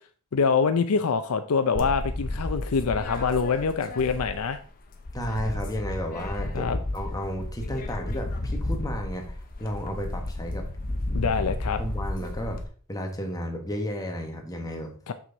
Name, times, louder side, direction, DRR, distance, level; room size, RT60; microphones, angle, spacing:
voice 1, 0.3-4.6 6.5-6.8 11.1-11.8 15.1-15.2, left 5 dB, 80° left, 9 dB, 0.5 m, -25 dB
sound 1, 1.7-4.6 4.9-12.6, left 1 dB, 40° left, 0.9 m, -32 dB
voice 2, 5.1-10.6 11.8-12.6 12.9-14.9, equal, 15° left, 2 dB, 1.3 m, -33 dB
6.2 x 6.1 x 3.9 m, 0.43 s
head